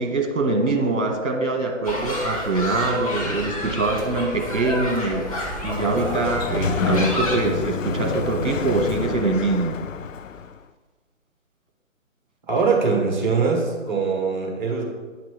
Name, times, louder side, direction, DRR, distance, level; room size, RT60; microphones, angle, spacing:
voice 1, 0.0-5.3 5.6-9.8, right 3 dB, 60° right, 3 dB, 1.5 m, -23 dB
sound 1, 1.8-7.4, left 1 dB, 25° left, 1.2 m, -29 dB
sound 2, 5.3-9.0, left 1 dB, 5° left, 1.2 m, -45 dB
Sliding door, 5.4-10.6, left 6 dB, 70° left, 0.5 m, -28 dB
voice 2, 12.5-14.8, right 4 dB, 35° right, -1 dB, 1.5 m, -22 dB
9.6 x 5.9 x 3.4 m, 1.4 s
figure-of-eight pair, 145°, 40 cm